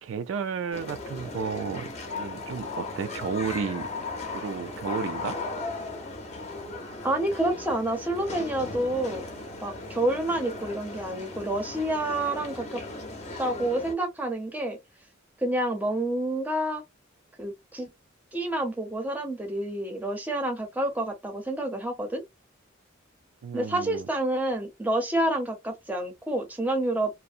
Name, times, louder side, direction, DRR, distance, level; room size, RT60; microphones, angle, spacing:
voice 1, 0.0-3.9 4.3-5.4 23.4-24.1, right 6 dB, 70° right, 0.3 m, -32 dB
sound 1, 0.7-13.9, left 3 dB, 35° left, 0.6 m, -37 dB
voice 2, 7.0-9.3 9.6-12.8 13.4-14.8 15.4-16.8 17.4-17.9 18.3-22.2 23.5-27.2, right 1 dB, 10° right, 0.6 m, -28 dB
2.6 x 2.0 x 2.4 m
head